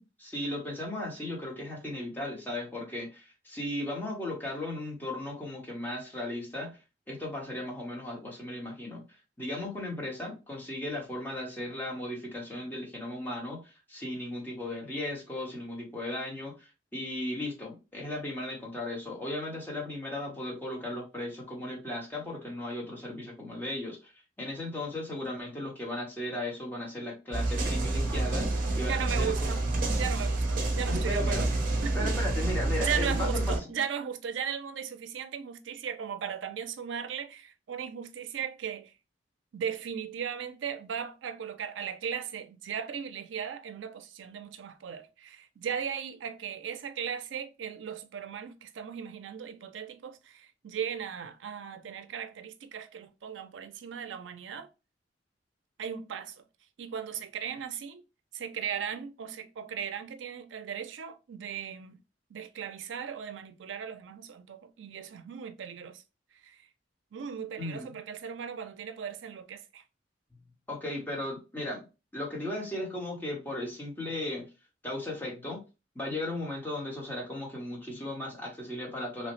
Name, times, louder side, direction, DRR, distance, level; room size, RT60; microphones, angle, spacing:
voice 1, 0.2-6.8 7.1-9.0 9.4-24.1 24.4-29.6 30.9-31.5 31.9-33.7 67.6-67.9 70.7-71.9 72.1-74.5 74.8-75.6 75.9-79.3, left 1 dB, 10° left, 0.9 m, -36 dB
sound 1, 27.3-33.6, right 2 dB, 50° right, 0.7 m, -28 dB
voice 2, 28.9-29.6 29.9-31.5 31.8-32.2 32.8-38.9 39.5-54.7 55.8-56.4 56.8-58.0 58.3-62.0 62.3-66.0 66.4-66.7 67.1-69.8, right 7 dB, 90° right, 0.4 m, -37 dB
3.1 x 2.0 x 2.9 m
head